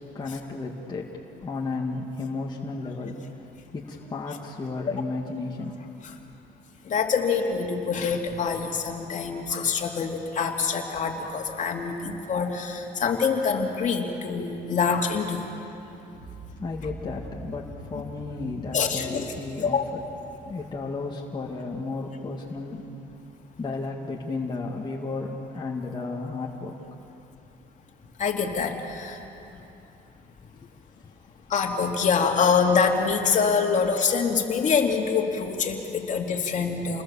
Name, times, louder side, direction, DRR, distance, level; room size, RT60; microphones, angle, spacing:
voice 1, 0.1-1.1 1.4-5.8 16.6-20.0 20.4-22.9 23.6-26.7 31.0-31.1, left 3 dB, 25° left, -2 dB, 2.0 m, -33 dB
voice 2, 6.9-15.4 18.7-19.8 28.2-29.2 31.5-37.0, left 5 dB, 45° left, 2 dB, 2.6 m, -25 dB
sound 1, 16.1-22.2, right 1 dB, 80° right, 5.0 m, -45 dB
29.0 x 20.5 x 7.1 m, 2.9 s
cardioid pair, 110°, 17 cm